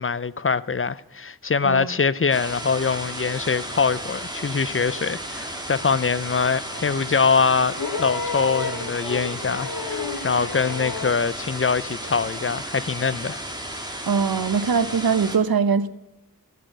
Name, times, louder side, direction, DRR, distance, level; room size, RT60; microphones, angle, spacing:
voice 1, 0.0-13.4, left 5 dB, 35° left, 0.6 m, -23 dB
Radio Static FM Faint signal, 2.3-15.4, right 1 dB, 10° right, 2.9 m, -34 dB
sound 1, 7.7-11.2 12.6-12.7, left 4 dB, 70° left, 1.3 m, -31 dB
voice 2, 14.0-15.9, right 6 dB, 85° right, 0.9 m, -22 dB
15.0 x 7.7 x 8.1 m
cardioid pair, 45°, 35 cm